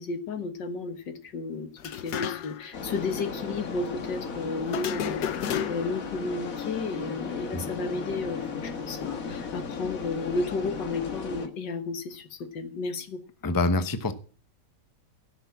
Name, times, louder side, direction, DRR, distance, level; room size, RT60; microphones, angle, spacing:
voice 1, 0.0-13.2, left 3 dB, 90° left, 9 dB, 2.1 m, -33 dB
sound 1, 1.8-2.7 3.0-3.1 4.7-6.1, left 9 dB, 70° left, 1.3 m, -32 dB
sound 2, 2.7-11.5, left 5 dB, 55° left, 1.8 m, -36 dB
voice 2, 13.4-14.1, left 2 dB, 20° left, 11 dB, 0.6 m, -25 dB
16.0 x 6.8 x 7.3 m, 0.41 s
omnidirectional pair, 1.9 m